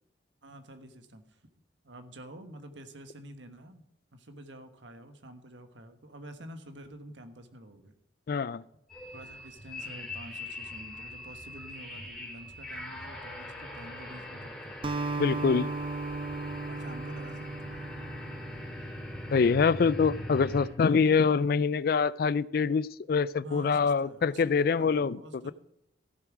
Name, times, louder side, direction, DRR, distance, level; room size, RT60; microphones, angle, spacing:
voice 1, 0.4-1.4 1.8-3.8 4.1-7.9 9.1-14.8 16.7-17.8 23.4-25.5, right 1 dB, 80° right, 8 dB, 1.4 m, -48 dB
voice 2, 8.3-8.6 15.2-15.7 19.3-25.2 25.4-25.5, left 5 dB, 55° left, 20 dB, 0.3 m, -25 dB
sound 1, 8.9-20.7, left 1 dB, 5° left, 3.2 m, -41 dB
Acoustic guitar, 14.8-19.3, right 3 dB, 30° right, 0.5 m, -36 dB
15.0 x 7.3 x 4.8 m, 0.79 s
head